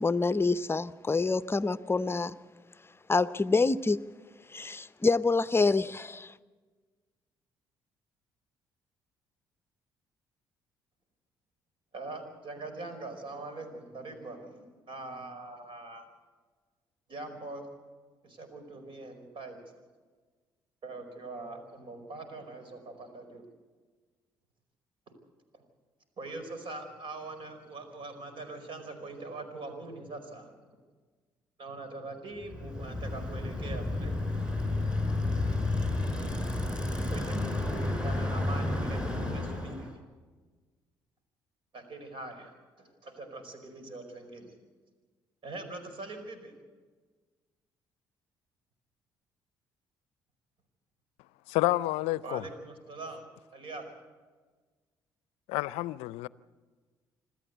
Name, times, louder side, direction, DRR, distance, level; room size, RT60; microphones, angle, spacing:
voice 1, 0.0-2.3 3.1-4.0 4.5-6.3, left 3 dB, 20° left, 0.7 m, -27 dB
voice 2, 11.9-16.0 17.1-17.7 18.2-19.6 20.8-23.5 25.5-25.6 26.2-30.5 31.6-34.2 37.1-39.9 41.7-44.5 45.4-46.5 52.2-53.2 53.5-53.8, right 2 dB, 55° right, 4.9 m, -42 dB
Bicycle, 32.4-39.9, left 2 dB, 10° right, 5.0 m, -31 dB
voice 3, 51.5-52.4 55.5-56.3, left 18 dB, 75° left, 0.5 m, -29 dB
27.0 x 13.0 x 8.2 m
hypercardioid pair, 55°, 11 cm